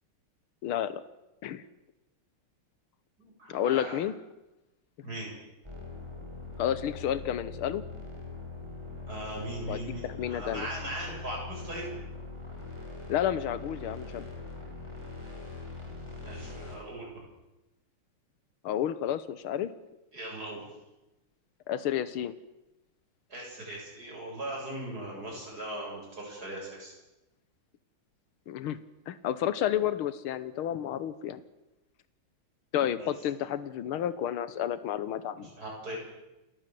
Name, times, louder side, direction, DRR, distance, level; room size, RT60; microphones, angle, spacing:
voice 1, 0.6-1.0 1.4-1.6 3.5-4.1 6.6-7.8 9.7-10.7 13.1-14.3 18.6-19.7 21.7-22.3 28.5-28.8 29.1-31.4 32.7-35.5, left 10 dB, 85° left, 15 dB, 1.9 m, -31 dB
voice 2, 3.2-4.0 5.0-5.3 9.1-11.8 16.2-17.2 20.1-20.6 23.3-26.9 33.0-33.1 35.4-36.0, right 1 dB, 45° right, -2 dB, 8.4 m, -39 dB
sound 1, 5.6-16.7, left 3 dB, 10° right, 5.3 m, -42 dB
29.5 x 13.5 x 7.7 m, 0.97 s
omnidirectional pair, 2.3 m